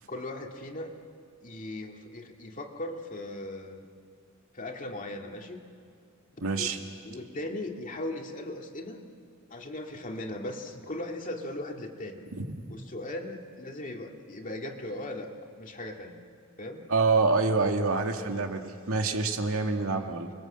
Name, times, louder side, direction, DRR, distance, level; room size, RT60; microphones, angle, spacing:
voice 1, 0.1-1.0 1.4-3.8 4.5-5.7 6.6-6.7 7.0-9.0 9.5-12.2 12.7-16.2 16.6-16.9, left 1 dB, 40° left, 2 dB, 2.2 m, -38 dB
voice 2, 6.4-6.8 12.3-12.6 16.9-20.3, right 3 dB, 90° right, 4 dB, 2.1 m, -26 dB
30.0 x 22.0 x 7.8 m, 2.3 s
head